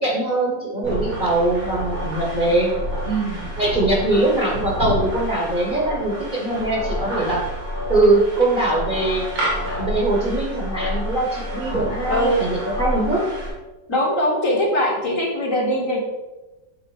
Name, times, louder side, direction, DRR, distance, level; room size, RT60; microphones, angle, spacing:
voice 1, 0.0-2.7 3.6-7.4 7.9-9.3 9.8-13.2, right 2 dB, 30° right, -2 dB, 1.3 m, -21 dB
sound 1, 0.8-13.5, equal, 80° right, 3.2 m, -28 dB
voice 2, 13.9-16.0, equal, 45° left, -1 dB, 1.8 m, -21 dB
9.6 x 3.9 x 5.3 m, 1.1 s
omnidirectional pair, 1.9 m